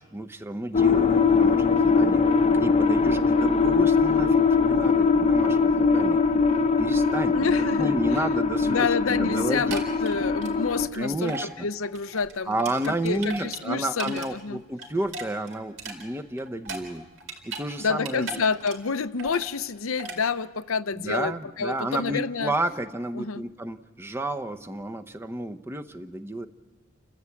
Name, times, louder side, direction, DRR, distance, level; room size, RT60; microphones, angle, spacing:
voice 1, 0.0-2.2 2.6-6.2 6.8-7.5 7.8-9.8 10.9-11.5 12.5-17.1 17.4-18.4 20.9-26.5, right 1 dB, 10° right, 9 dB, 0.8 m, -31 dB
sound 1, 0.7-10.9, left 4 dB, 30° left, 0.8 m, -21 dB
voice 2, 7.3-8.2 8.6-11.4 11.6-12.6 12.8-14.6 17.8-22.5 23.2-23.5, left 5 dB, 75° left, 13 dB, 0.7 m, -28 dB
sound 2, 9.5-11.0 11.3-11.5 11.8-14.3 14.6-17.7 17.9-18.9 19.2-19.6 20.0-20.2, right 3 dB, 65° right, 4.3 m, -38 dB
29.5 x 14.5 x 8.5 m, 1.3 s
head